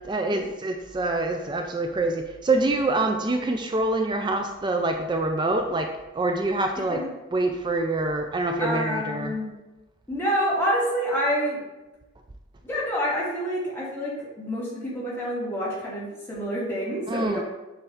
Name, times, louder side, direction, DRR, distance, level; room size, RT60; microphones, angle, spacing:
voice 1, 0.0-7.0 7.3-9.3 17.1-17.4, right 2 dB, 25° right, 4 dB, 0.4 m, -26 dB
voice 2, 8.6-9.5 10.1-11.6 12.6-17.4, equal, 10° left, -7 dB, 2.0 m, -27 dB
7.6 x 3.1 x 4.8 m, 1.1 s
head